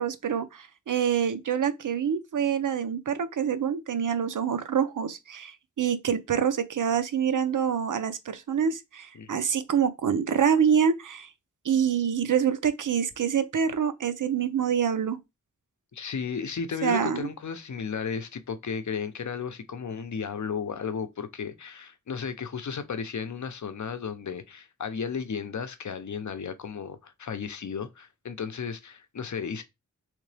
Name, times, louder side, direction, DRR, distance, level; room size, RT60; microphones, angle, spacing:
voice 1, 0.0-11.3 11.6-15.2 16.8-17.3, right 8 dB, 80° right, 0.6 m, -26 dB
voice 2, 9.1-9.5 15.9-29.6, left 6 dB, 70° left, 0.7 m, -34 dB
3.6 x 3.3 x 3.3 m
wide cardioid pair, 75°, 31 cm